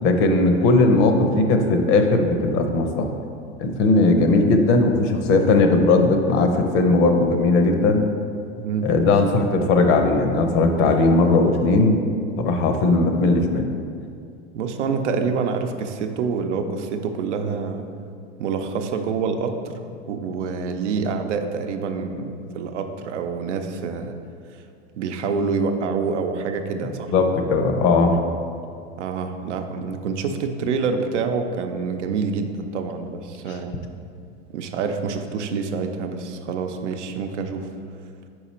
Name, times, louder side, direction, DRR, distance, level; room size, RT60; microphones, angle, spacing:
voice 1, 0.0-3.1 3.6-8.0 8.8-12.0 12.4-13.7 26.8-28.2, left 3 dB, 50° left, 5 dB, 0.7 m, -18 dB
voice 2, 14.5-17.8 18.4-24.1 25.0-27.1 29.0-33.8 34.5-37.7, right 5 dB, 85° right, 5 dB, 0.6 m, -27 dB
4.9 x 4.7 x 4.3 m, 2.4 s
hypercardioid pair, 110°, 35 cm